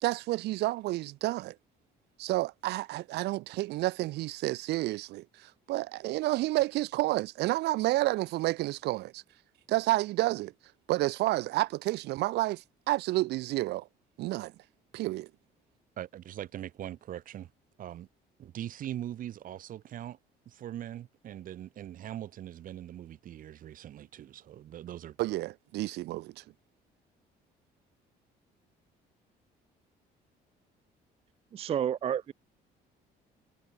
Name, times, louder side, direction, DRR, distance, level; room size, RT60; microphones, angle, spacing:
voice 1, 0.0-1.5 2.2-9.2 9.7-10.5 10.9-13.9 14.2-14.5 14.9-15.3 25.2-26.4, right 18 dB, 80° right, 1.1 m, -30 dB
voice 2, 16.0-17.5 17.8-18.1 18.4-20.2 20.5-25.2, right 11 dB, 55° right, 1.0 m, -41 dB
voice 3, 31.5-32.3, right 9 dB, 35° right, 0.4 m, -30 dB
cardioid pair, 110°, 17 cm